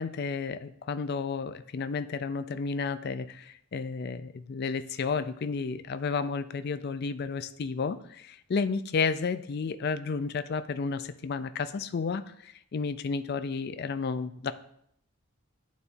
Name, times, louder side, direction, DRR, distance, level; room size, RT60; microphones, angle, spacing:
voice 1, 0.0-14.5, left 5 dB, 50° left, 12 dB, 0.4 m, -32 dB
11.0 x 4.1 x 2.6 m, 0.71 s
head